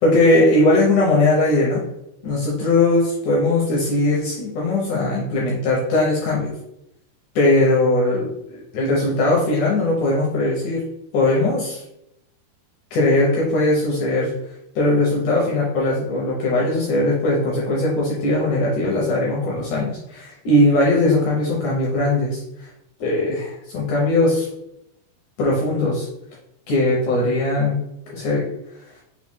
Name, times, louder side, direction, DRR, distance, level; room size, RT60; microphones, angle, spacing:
voice 1, 0.0-1.8 2.2-6.5 7.4-8.3 8.7-10.8 11.1-11.8 12.9-14.3 14.8-22.4 23.0-24.5 25.4-26.1 26.7-27.8 28.1-28.4, left 2 dB, 75° left, -4 dB, 1.8 m, -19 dB
6.1 x 2.2 x 3.6 m, 0.82 s
omnidirectional pair, 4.6 m